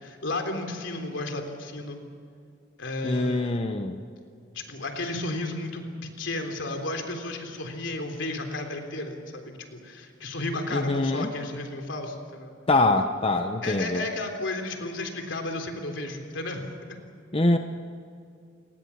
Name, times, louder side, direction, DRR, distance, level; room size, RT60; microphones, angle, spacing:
voice 1, 0.0-2.0 2.8-3.6 4.5-9.4 9.7-12.5 13.6-17.0, left 2 dB, 70° left, 5 dB, 3.6 m, -33 dB
voice 2, 3.0-4.0 10.7-11.3 12.7-14.0 17.3-17.6, left 2 dB, 30° left, 6 dB, 0.9 m, -24 dB
29.0 x 20.0 x 7.2 m, 2.4 s
head